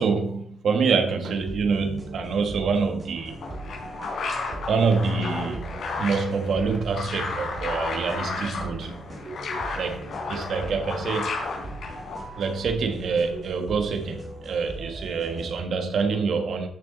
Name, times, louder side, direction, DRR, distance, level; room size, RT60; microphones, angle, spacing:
voice 1, 0.0-3.4 4.4-9.1 9.7-11.4 12.3-16.7, right 5 dB, 60° right, 1.5 m, -26 dB
sound 1, 1.3-15.6, right 2 dB, 35° right, 2.8 m, -39 dB
sound 2, 3.2-12.4, left 4 dB, 70° left, 3.7 m, -33 dB
13.5 x 6.7 x 4.1 m
wide cardioid pair, 150°, 0 cm